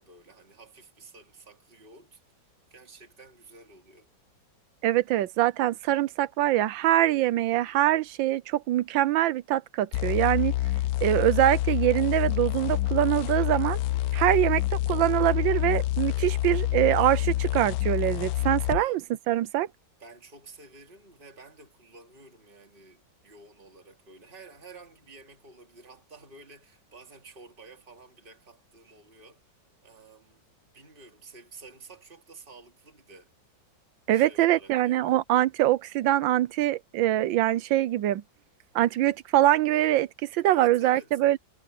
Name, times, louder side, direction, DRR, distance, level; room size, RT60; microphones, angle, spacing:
voice 1, 0.0-2.2 2.7-4.1 14.1-14.6 18.6-19.0 20.0-29.6 29.8-30.4 30.7-33.3 34.1-35.2 40.4-41.2, right 3 dB, 25° right, 2.7 m, -51 dB
voice 2, 4.8-10.5 11.0-13.8 14.1-14.6 14.9-19.0 19.3-19.7 34.1-38.2 38.7-41.4, right 14 dB, 85° right, 1.4 m, -24 dB
sound 1, 9.9-18.8, left 15 dB, 70° left, 0.9 m, -27 dB
omnidirectional pair, 2.0 m